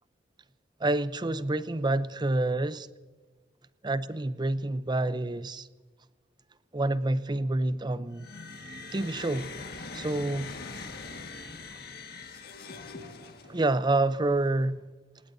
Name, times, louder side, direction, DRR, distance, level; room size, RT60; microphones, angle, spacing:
voice 1, 0.8-2.9 3.8-5.7 6.7-8.3 8.9-9.5 9.9-10.5 13.5-14.8, right 2 dB, 25° right, 0.6 m, -28 dB
sound 1, 8.1-13.8, left 3 dB, 55° left, 1.7 m, -42 dB
26.5 x 19.0 x 2.7 m
head